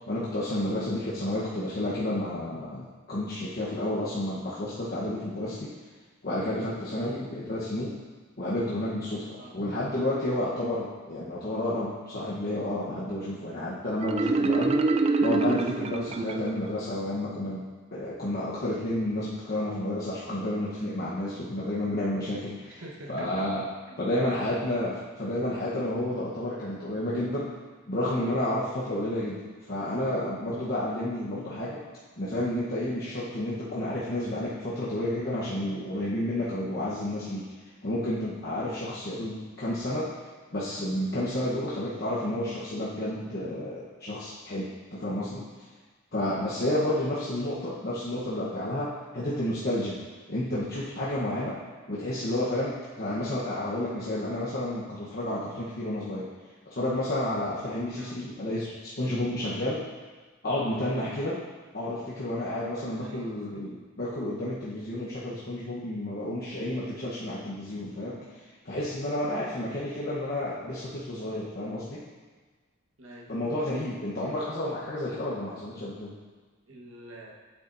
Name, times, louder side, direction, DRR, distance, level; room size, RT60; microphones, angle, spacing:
voice 1, 0.1-5.7 6.2-7.9 8.4-14.9 15.2-17.6 17.9-22.8 23.1-23.6 24.0-27.5 27.9-31.8 32.2-37.5 37.8-40.1 40.5-45.4 46.1-50.0 50.3-51.6 51.9-56.3 56.7-59.8 60.4-61.4 61.7-72.0 73.3-76.1, left 1 dB, 50° left, -8 dB, 1.0 m, -31 dB
Marimba xylophone, 14.0-16.8, right 3 dB, 30° right, 0.3 m, -25 dB
voice 2, 22.8-23.5 23.9-24.0 24.3-24.5 46.8-47.0 57.9-58.1 62.9-63.6 73.0-73.3 76.7-77.3, right 1 dB, 80° right, -2 dB, 1.3 m, -45 dB
8.6 x 7.0 x 2.6 m, 1.4 s
head